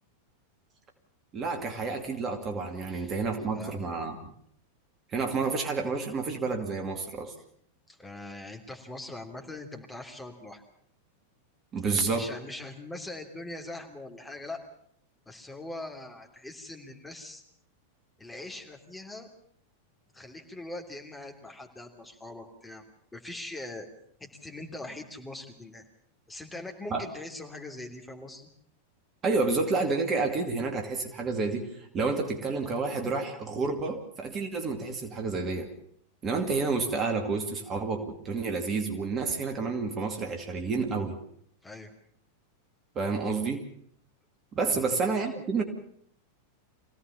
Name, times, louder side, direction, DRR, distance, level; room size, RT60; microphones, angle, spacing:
voice 1, 1.3-4.3 5.1-7.3 11.7-12.3 26.9-27.1 29.2-35.7 36.2-41.2 42.9-43.6 44.5-45.6, right 4 dB, 25° right, 4 dB, 2.5 m, -29 dB
voice 2, 3.5-3.8 7.9-10.6 12.1-14.6 15.3-17.4 18.2-19.3 20.1-22.8 23.1-23.9 24.2-25.8 26.3-28.5 41.6-41.9 44.7-44.9, left 2 dB, 10° left, 2 dB, 3.1 m, -42 dB
25.0 x 17.0 x 7.1 m, 0.67 s
figure-of-eight pair, 90°, 0 cm